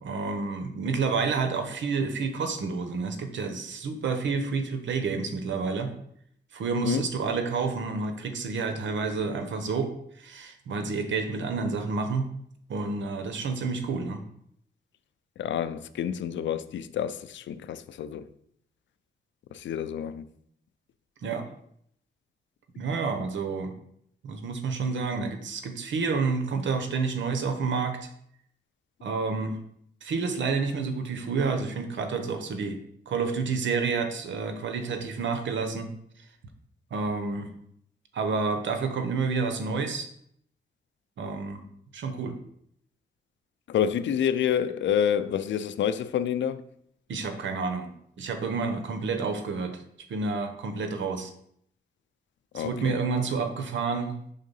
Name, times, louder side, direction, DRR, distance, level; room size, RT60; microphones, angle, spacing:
voice 1, 0.0-5.9 6.5-12.3 12.7-14.2 21.2-21.5 22.8-23.7 24.2-28.1 29.0-29.6 30.0-32.8 33.1-35.9 36.9-37.5 38.1-40.1 41.2-41.6 41.9-42.4 47.1-47.9 48.2-49.8 50.1-51.3 52.5-54.3, right 4 dB, 85° right, 0.9 m, -29 dB
voice 2, 15.4-18.3 19.5-20.2 43.7-46.6 52.5-52.9, left 9 dB, 80° left, 0.4 m, -28 dB
5.7 x 3.6 x 5.4 m
cardioid pair, 75°, 19 cm